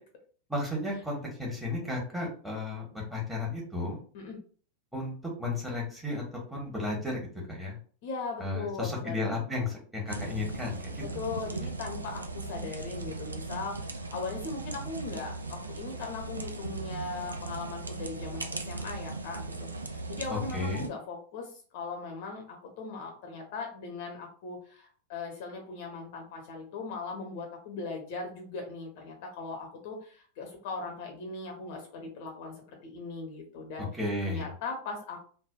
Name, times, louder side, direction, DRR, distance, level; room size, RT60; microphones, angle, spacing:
voice 1, 0.5-4.0 4.9-5.1 5.4-6.2 6.5-7.2 7.5-7.8 8.4-11.0 20.3-20.9 34.0-34.5, left 2 dB, 5° right, -2 dB, 1.2 m, -33 dB
voice 2, 8.0-9.2 11.0-33.9 34.3-35.2, left 4 dB, 50° left, 2 dB, 0.7 m, -39 dB
sound 1, 10.1-20.9, right 3 dB, 75° right, 0.3 m, -38 dB
3.3 x 2.1 x 2.3 m, 0.43 s
figure-of-eight pair, 90°, 0 cm